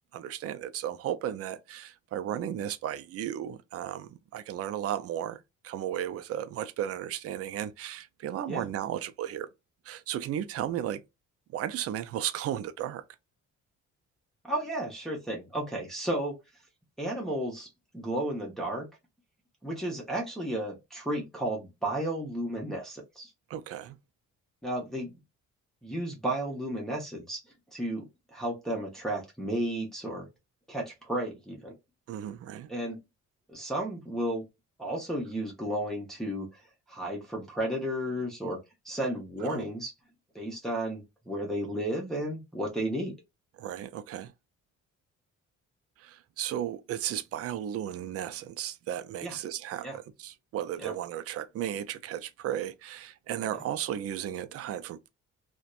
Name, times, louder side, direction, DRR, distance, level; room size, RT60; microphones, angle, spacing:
voice 1, 0.1-9.5 9.9-11.0 11.5-13.0 23.5-24.0 32.1-32.7 39.4-39.7 43.6-44.3 46.0-55.1, right 11 dB, 50° right, 0.4 m, -35 dB
voice 2, 14.4-16.4 17.0-17.7 17.9-18.9 19.6-23.3 24.6-25.1 25.8-27.4 27.7-30.3 30.7-31.7 32.7-33.0 33.5-34.4 34.8-38.6 38.8-39.9 40.3-43.1 49.2-49.4 49.8-50.0 50.8-50.9 53.5-53.6, right 1 dB, ahead, 0.8 m, -33 dB
2.5 x 2.1 x 2.3 m
cardioid pair, 90°, 30 cm